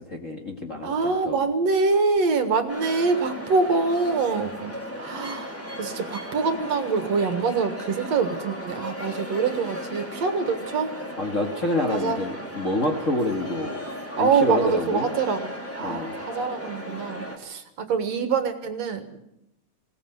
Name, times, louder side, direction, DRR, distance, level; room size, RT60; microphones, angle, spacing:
voice 1, 0.0-1.4 11.2-13.8 14.2-15.1 15.8-16.2, left 1 dB, 30° left, 1 dB, 1.6 m, -27 dB
voice 2, 0.8-10.9 11.9-12.2 14.2-19.2, right 4 dB, 60° right, 8 dB, 2.6 m, -25 dB
sound 1, 2.7-17.4, equal, 5° left, 2.3 m, -36 dB
20.5 x 18.0 x 8.0 m, 0.82 s
omnidirectional pair, 3.5 m